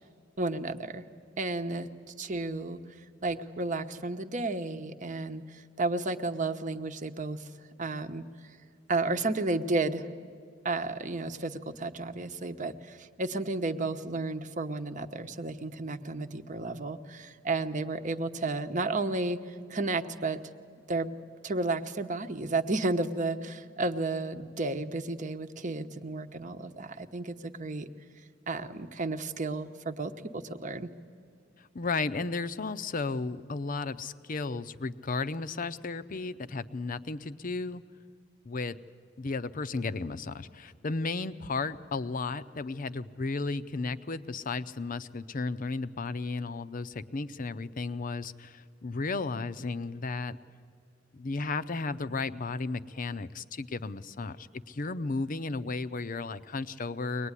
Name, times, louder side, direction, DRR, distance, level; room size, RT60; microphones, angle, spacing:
voice 1, 0.4-1.0 1.4-1.9 2.2-2.8 3.2-7.4 7.8-8.2 8.9-10.1 10.6-19.4 19.7-20.4 20.9-21.1 21.4-27.9 28.5-30.9, right 2 dB, 40° right, 8 dB, 0.9 m, -32 dB
voice 2, 31.6-37.8 38.4-38.8 39.2-50.4 51.1-57.3, left 3 dB, 45° left, 12 dB, 0.6 m, -34 dB
23.5 x 19.5 x 9.8 m, 2.3 s
head